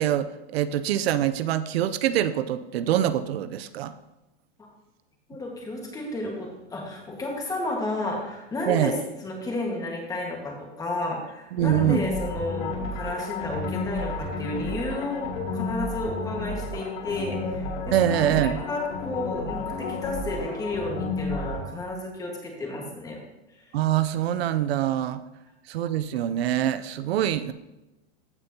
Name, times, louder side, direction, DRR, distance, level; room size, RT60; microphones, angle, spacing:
voice 1, 0.0-3.9 8.7-8.9 11.5-12.0 17.9-18.6 23.7-25.2 25.7-27.5, right 12 dB, 75° right, 13 dB, 0.6 m, -24 dB
voice 2, 5.3-8.9 9.2-23.2 23.6-23.7, left 2 dB, 10° left, 0 dB, 1.6 m, -32 dB
sound 1, 11.6-21.6, left 3 dB, 80° left, 2.7 m, -32 dB
15.0 x 5.2 x 2.8 m, 1.0 s
supercardioid pair, 155°, 31 cm